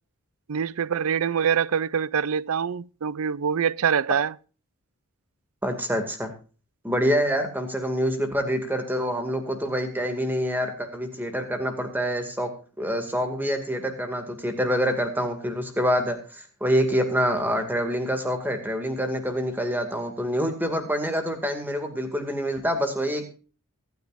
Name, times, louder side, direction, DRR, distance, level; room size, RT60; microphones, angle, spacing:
voice 1, 0.5-4.3, right 7 dB, 75° right, 0.5 m, -25 dB
voice 2, 5.6-6.3 6.8-12.5 12.8-23.3, equal, 10° right, 2.2 m, -26 dB
24.5 x 9.5 x 2.6 m
head